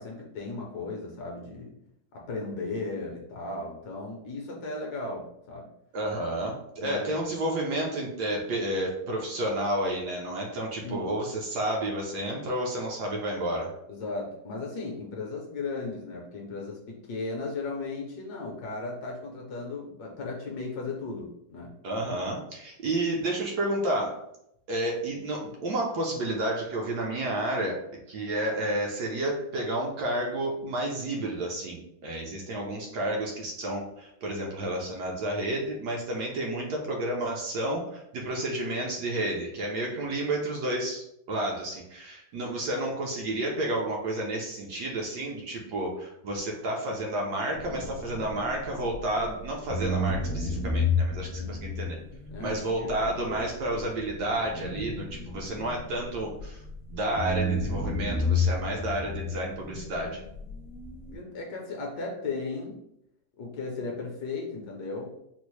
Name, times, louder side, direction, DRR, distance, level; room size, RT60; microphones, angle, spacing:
voice 1, 0.0-1.7 2.1-5.7 6.8-7.1 10.8-11.1 13.9-21.7 40.1-40.2 51.4-51.6 52.3-53.4 61.1-62.8 63.4-65.1, left 3 dB, 65° left, 0 dB, 1.1 m, -36 dB
voice 2, 5.9-13.7 21.8-24.2 24.7-27.8 28.1-52.0 52.4-56.6 56.9-60.2, right 1 dB, 70° right, -1 dB, 1.1 m, -31 dB
sound 1, 47.5-49.3 49.7-56.8 57.2-61.2, left 2 dB, 50° left, 0.8 m, -31 dB
4.2 x 2.0 x 3.0 m, 0.78 s
omnidirectional pair, 2.0 m